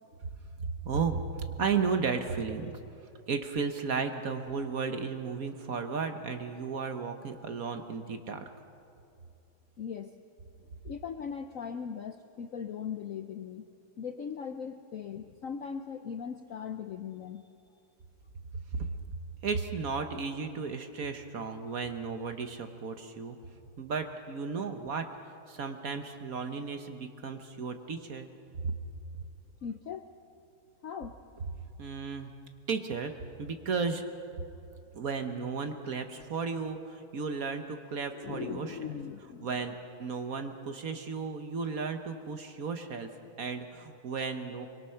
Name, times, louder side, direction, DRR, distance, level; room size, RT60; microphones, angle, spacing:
voice 1, 0.8-2.8 3.3-8.4 18.7-18.9 19.4-23.4 23.8-25.1 25.5-28.3 31.8-32.3 32.7-33.1 33.4-34.0 34.9-38.9 39.4-43.1 43.4-44.7, right 5 dB, 50° right, 7 dB, 1.3 m, -34 dB
voice 2, 9.8-10.1 10.8-13.6 14.0-17.4 29.6-30.1 30.8-31.1 38.2-39.5, left 7 dB, 75° left, 7 dB, 0.7 m, -39 dB
25.0 x 22.5 x 5.7 m, 2.6 s
omnidirectional pair, 2.3 m